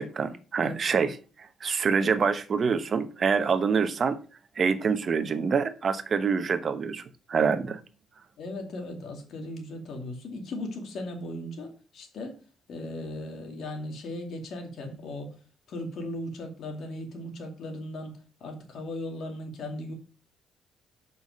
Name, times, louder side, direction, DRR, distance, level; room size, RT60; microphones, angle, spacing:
voice 1, 0.0-4.2 4.6-7.0 7.3-7.8, right 5 dB, 45° right, 0.8 m, -26 dB
voice 2, 8.4-12.4 12.7-15.3 15.7-19.9, left 1 dB, 65° left, 2.4 m, -37 dB
7.1 x 5.6 x 5.3 m
cardioid pair, 90°, 0 cm